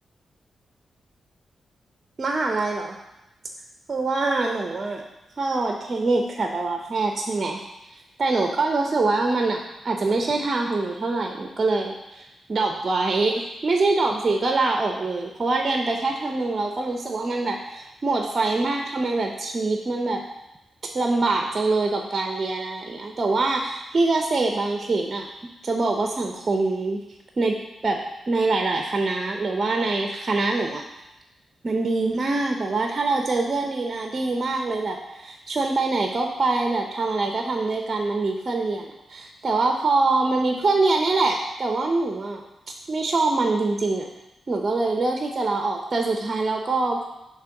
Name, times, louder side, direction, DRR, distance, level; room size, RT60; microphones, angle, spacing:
voice 1, 2.2-3.0 3.9-5.0 5.4-7.6 7.9-20.2 20.9-25.3 25.6-27.0 27.4-27.5 27.8-28.0 28.3-30.8 31.6-42.4 42.9-44.1 44.5-47.0, right 3 dB, 50° right, 2 dB, 0.6 m, -24 dB
6.7 x 3.0 x 5.8 m, 0.93 s
supercardioid pair, 45°, 0 cm